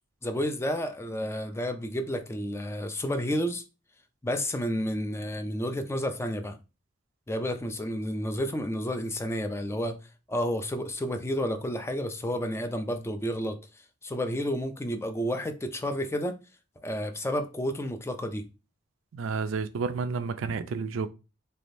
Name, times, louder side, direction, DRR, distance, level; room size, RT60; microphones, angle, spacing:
voice 1, 0.2-3.6 4.2-6.6 7.3-10.0 10.3-13.6 14.0-16.4 16.8-18.5, equal, 15° left, 0.4 m, -31 dB
voice 2, 19.1-21.1, right 4 dB, 75° right, 0.4 m, -30 dB
3.4 x 3.3 x 2.6 m
head